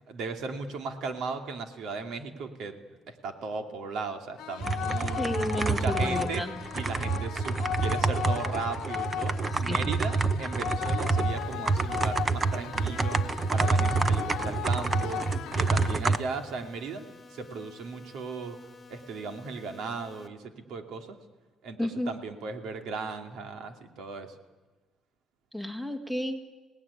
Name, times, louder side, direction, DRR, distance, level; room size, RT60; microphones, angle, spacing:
voice 1, 0.1-5.2 5.6-6.4 6.7-15.2 15.5-17.0 17.3-18.6 18.9-21.2 21.6-24.4, right 4 dB, 75° right, 5 dB, 2.4 m, -37 dB
sound 1, 4.4-16.4, left 12 dB, 90° left, 0.9 m, -36 dB
sound 2, 4.6-16.2, right 4 dB, 25° right, 0.9 m, -28 dB
voice 2, 5.2-6.6 9.5-9.9 21.8-22.1 25.5-26.4, left 1 dB, 5° right, 7 dB, 1.8 m, -32 dB
sound 3, 11.3-20.3, left 3 dB, 25° left, 2.2 m, -52 dB
26.0 x 18.5 x 9.8 m, 1.3 s
cardioid pair, 135°, 0 cm